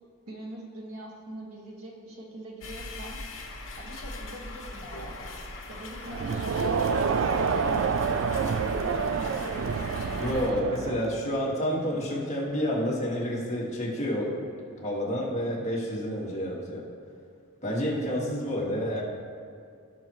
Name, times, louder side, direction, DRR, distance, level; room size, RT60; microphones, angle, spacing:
voice 1, 0.3-3.2 3.8-5.3 5.7-10.9, right 1 dB, 90° right, -2 dB, 1.7 m, -43 dB
sound 1, 2.6-10.5, left 2 dB, 65° left, 1.2 m, -40 dB
Crowd, 6.1-11.2, right 5 dB, 60° right, 0.3 m, -28 dB
voice 2, 10.1-14.4 14.8-16.8 17.6-19.0, equal, 30° left, -5 dB, 1.8 m, -29 dB
17.0 x 5.9 x 3.1 m, 2.3 s
head